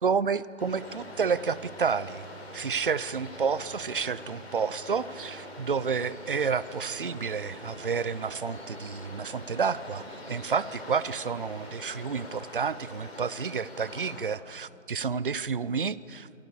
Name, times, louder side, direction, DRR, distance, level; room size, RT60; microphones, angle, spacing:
voice 1, 0.0-2.3 2.5-16.3, right 5 dB, 45° right, 18 dB, 0.6 m, -30 dB
sound 1, 0.6-14.2, left 1 dB, 50° left, 6.7 m, -44 dB
28.0 x 22.0 x 7.0 m, 2.6 s
figure-of-eight pair, 160°, 39 cm